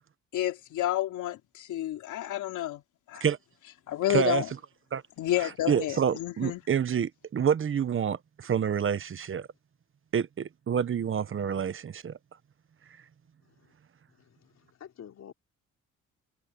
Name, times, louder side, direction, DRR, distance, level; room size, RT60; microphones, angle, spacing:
voice 1, 0.3-2.8 3.1-3.2 3.9-4.5 5.2-6.6, left 13 dB, 80° left, 3.1 m, -30 dB
voice 2, 4.1-4.4 4.9-5.0 5.4-9.5 10.1-12.2, right 8 dB, 45° right, 1.1 m, -28 dB
voice 3, 14.2-15.3, left 9 dB, 60° left, 3.7 m, -49 dB
cardioid pair, 90°, 30 cm